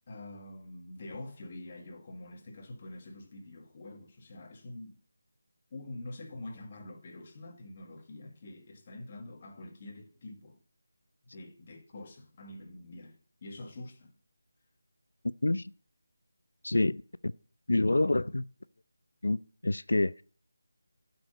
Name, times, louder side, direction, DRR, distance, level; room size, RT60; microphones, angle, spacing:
voice 1, 0.1-5.0 5.7-10.6 11.3-14.1, left 2 dB, 25° left, 1.6 m, -46 dB
voice 2, 16.6-17.3 17.7-18.5 19.2-19.4 19.6-20.2, left 2 dB, 90° left, 0.5 m, -27 dB
11.5 x 6.1 x 7.6 m
figure-of-eight pair, 175°, 0 cm